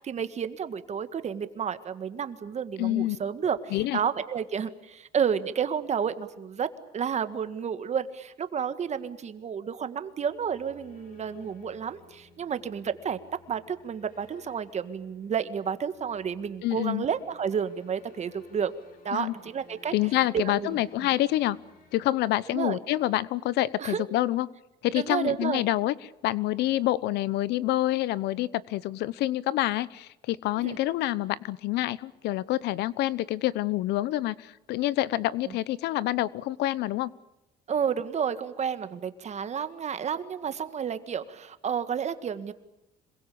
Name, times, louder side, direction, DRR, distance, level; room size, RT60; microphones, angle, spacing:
voice 1, 0.0-6.7 6.9-13.2 13.5-18.7 19.0-19.9 20.3-21.1 22.5-22.8 23.8-24.0 24.9-25.6 30.6-30.8 35.5-35.6 37.7-42.5, right 7 dB, 40° right, 11 dB, 1.8 m, -31 dB
voice 2, 2.8-3.2 3.7-4.0 16.6-17.1 19.1-19.3 19.9-21.6 21.9-24.5 24.8-25.9 26.2-37.1, left 15 dB, 80° left, 20 dB, 0.9 m, -27 dB
sound 1, 10.2-23.0, left 3 dB, 60° left, 7.3 m, -56 dB
26.5 x 22.0 x 8.6 m, 0.89 s
cardioid pair, 110°, 17 cm